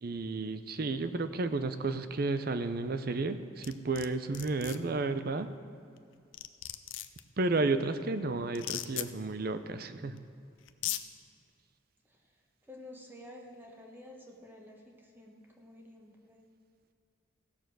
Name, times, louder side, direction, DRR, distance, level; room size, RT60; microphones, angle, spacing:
voice 1, 0.0-5.5 7.4-10.2, right 3 dB, 50° right, 10 dB, 0.6 m, -32 dB
sound 1, 3.6-4.1 4.3-4.8 6.0-6.1 6.3-7.2 8.5-9.1 10.2-10.3 10.7-11.0, left 14 dB, 70° left, 0.5 m, -36 dB
voice 2, 7.5-8.3 12.1-12.2 12.7-16.5, left 1 dB, 10° right, 0 dB, 1.2 m, -51 dB
16.0 x 6.9 x 6.2 m, 2.4 s
head